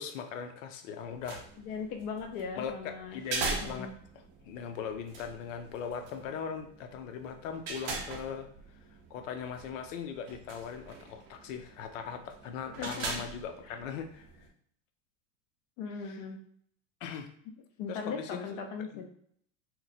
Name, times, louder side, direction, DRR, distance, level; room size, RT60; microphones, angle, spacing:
voice 1, 0.0-1.4 2.6-3.9 4.5-8.5 9.1-14.3 16.1-16.2 17.0-17.3 17.9-18.6 18.9-19.1, left 7 dB, 75° left, 7 dB, 0.6 m, -39 dB
sound 1, 1.0-14.5, right 3 dB, 30° right, 0.5 m, -42 dB
voice 2, 1.6-3.2 3.6-3.9 12.8-13.1 13.7-13.8 15.8-16.4 17.8-19.1, left 5 dB, 35° left, 2 dB, 0.4 m, -38 dB
3.0 x 2.2 x 4.0 m, 0.64 s
supercardioid pair, 170°, 39 cm